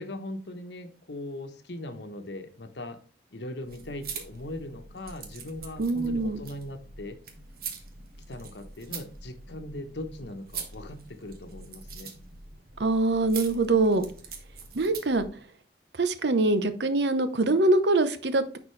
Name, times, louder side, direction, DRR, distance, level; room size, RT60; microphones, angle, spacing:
voice 1, 0.0-3.0 3.3-7.2 8.3-12.1, left 1 dB, 75° left, 1.0 m, -39 dB
sound 1, 3.6-15.3, right 5 dB, 55° right, 1.3 m, -43 dB
voice 2, 5.8-6.4 12.8-14.1 14.7-15.2 16.0-18.6, right 2 dB, 75° right, 0.8 m, -24 dB
10.0 x 4.4 x 3.2 m
head